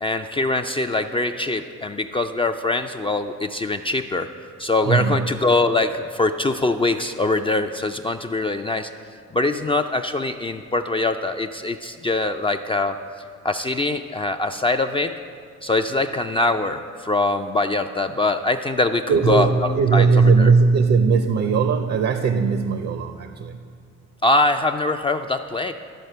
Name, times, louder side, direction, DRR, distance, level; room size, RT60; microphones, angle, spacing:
voice 1, 0.0-4.3 4.6-8.9 9.3-13.0 13.4-15.1 15.6-20.5 24.2-25.7, left 2 dB, 20° left, 6 dB, 0.3 m, -23 dB
voice 2, 4.9-5.2 19.1-23.6, right 5 dB, 55° right, 8 dB, 0.6 m, -18 dB
12.5 x 4.3 x 6.7 m, 2.1 s
cardioid pair, 90°, 30 cm